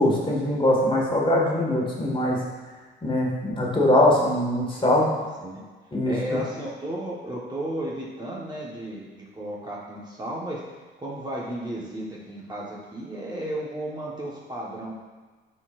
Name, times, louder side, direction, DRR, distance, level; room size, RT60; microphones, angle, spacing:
voice 1, 0.0-2.4 3.0-5.1 5.9-6.4, left 1 dB, 25° left, -3 dB, 1.7 m, -22 dB
voice 2, 4.8-5.6 6.1-10.6 11.0-14.9, right 1 dB, 20° right, -5 dB, 1.3 m, -34 dB
9.6 x 4.5 x 2.5 m, 1.4 s
cardioid pair, 90°, 20 cm